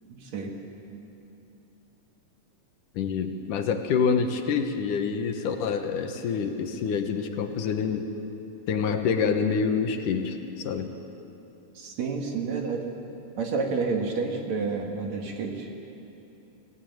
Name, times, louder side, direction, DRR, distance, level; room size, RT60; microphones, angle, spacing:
voice 1, 0.1-0.5 0.9-1.0 11.7-12.9 13.4-15.7, right 4 dB, 55° right, 2 dB, 2.9 m, -30 dB
voice 2, 3.0-8.1 8.7-10.9, left 6 dB, 70° left, 6 dB, 2.6 m, -27 dB
24.5 x 16.5 x 9.3 m, 2.9 s
omnidirectional pair, 4.0 m